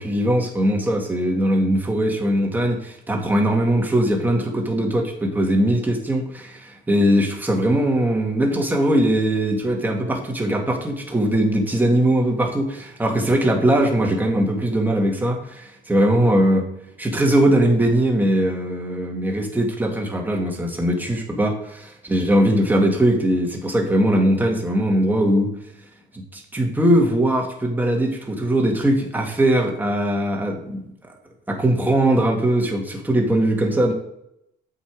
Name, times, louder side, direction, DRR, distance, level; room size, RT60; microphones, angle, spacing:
voice 1, 0.0-16.6 17.0-21.7 22.1-25.5 26.1-30.8 31.5-33.9, right 1 dB, 10° right, 1 dB, 2.1 m, -20 dB
8.4 x 5.8 x 4.7 m, 0.77 s
cardioid pair, 110°, 17 cm